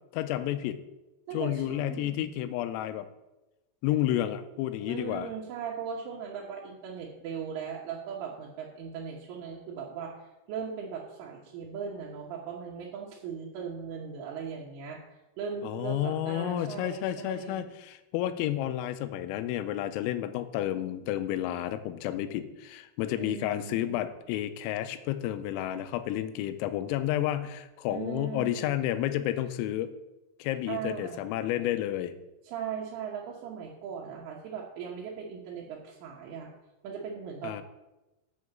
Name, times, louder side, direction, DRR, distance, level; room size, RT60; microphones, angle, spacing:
voice 1, 0.1-0.8 1.3-3.1 3.8-5.3 15.6-29.9 30.4-32.1 37.4-37.6, left 12 dB, 90° left, 12 dB, 3.3 m, -31 dB
voice 2, 1.3-2.3 4.9-15.0 15.4-17.7 23.2-24.0 27.9-28.9 30.7-31.3 32.4-36.5 36.8-37.6, right 7 dB, 75° right, -3 dB, 3.4 m, -38 dB
7.7 x 6.4 x 7.3 m, 1.0 s
omnidirectional pair, 5.9 m